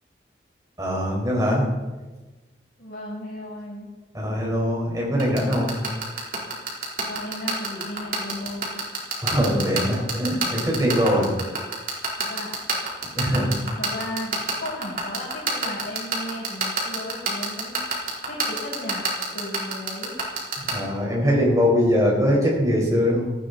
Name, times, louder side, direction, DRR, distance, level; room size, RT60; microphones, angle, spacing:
voice 1, 0.8-1.7 4.1-5.8 9.2-11.3 13.1-13.6 20.6-23.3, equal, 20° right, -3 dB, 4.8 m, -22 dB
voice 2, 2.8-3.9 7.1-8.8 12.2-12.6 13.8-19.1 19.3-20.2, left 1 dB, 60° left, -5 dB, 6.6 m, -35 dB
sound 1, 5.2-20.7, right 5 dB, 50° right, 4.1 m, -25 dB
18.0 x 15.0 x 4.1 m, 1.2 s
head